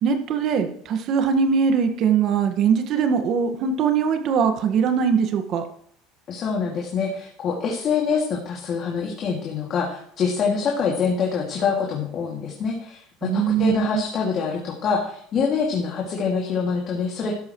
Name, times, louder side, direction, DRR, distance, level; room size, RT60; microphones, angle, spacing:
voice 1, 0.0-5.6 13.2-14.0, right 6 dB, 55° right, 7 dB, 1.7 m, -21 dB
voice 2, 6.3-17.3, left 5 dB, 45° left, -2 dB, 2.5 m, -25 dB
13.0 x 11.5 x 3.2 m, 0.64 s
supercardioid pair, 110°, 0 cm